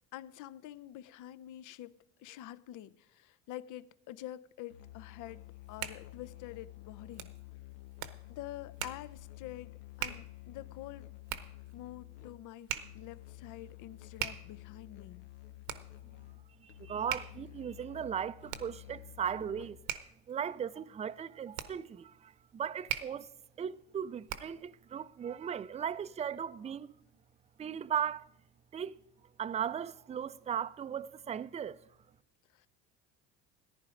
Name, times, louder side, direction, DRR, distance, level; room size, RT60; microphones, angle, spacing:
voice 1, 0.1-7.3 8.3-9.7 10.0-11.1 11.7-15.2 32.5-32.7, left 13 dB, 60° left, 0.6 m, -47 dB
Musical instrument, 4.7-20.0, left 16 dB, 85° left, 0.8 m, -51 dB
Hands, 5.4-24.7, right 11 dB, 75° right, 1.0 m, -44 dB
voice 2, 16.6-19.8 20.3-23.3 23.6-26.9 27.6-28.3 28.7-29.0 29.4-31.8, right 8 dB, 20° right, 0.4 m, -37 dB
14.5 x 10.0 x 5.0 m
supercardioid pair, 85°, 35 cm